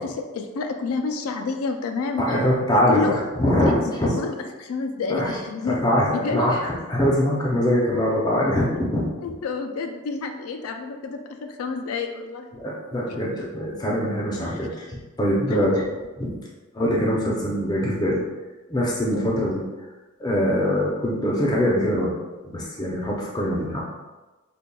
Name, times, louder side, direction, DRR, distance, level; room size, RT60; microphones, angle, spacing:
voice 1, 0.0-2.2 2.7-3.2 3.5-5.8 6.1-6.4 9.2-12.5 14.4-14.6 15.5-15.7 19.1-19.3, left 4 dB, 80° left, 5 dB, 0.3 m, -29 dB
voice 2, 2.2-4.1 5.1-5.4 5.7-9.1 12.5-15.8 16.2-16.4 16.7-18.2 18.7-19.6 20.2-22.1 22.4-23.8, equal, 20° left, -4 dB, 0.5 m, -23 dB
5.2 x 2.2 x 2.2 m, 1.2 s
head